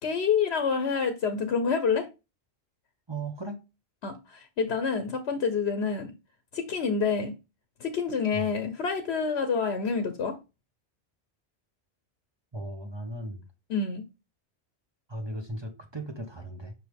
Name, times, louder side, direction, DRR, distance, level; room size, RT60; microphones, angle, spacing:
voice 1, 0.0-2.1 4.0-6.1 6.5-7.3 7.8-10.4 13.7-14.0, left 5 dB, 75° left, 1.1 m, -27 dB
voice 2, 3.1-3.6 8.3-8.5 12.5-13.5 15.1-16.7, right 2 dB, 25° right, 1.0 m, -37 dB
6.2 x 4.9 x 3.4 m
omnidirectional pair, 1.1 m